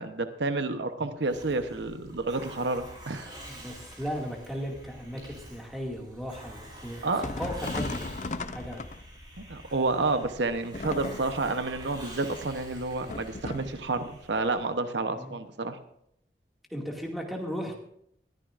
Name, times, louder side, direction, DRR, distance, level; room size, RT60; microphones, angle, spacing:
voice 1, 0.0-3.3 7.0-7.2 9.4-15.8, right 3 dB, 80° right, 9 dB, 0.9 m, -30 dB
Hiss, 1.2-14.7, right 1 dB, 25° right, 4.5 m, -47 dB
voice 2, 3.5-8.1 8.5-8.9 15.1-15.4 16.7-17.8, equal, ahead, -1 dB, 2.2 m, -36 dB
sound 1, 7.2-9.3 10.7-11.5 13.1-13.9, left 3 dB, 40° left, 0.6 m, -36 dB
20.5 x 13.5 x 2.5 m, 0.72 s
head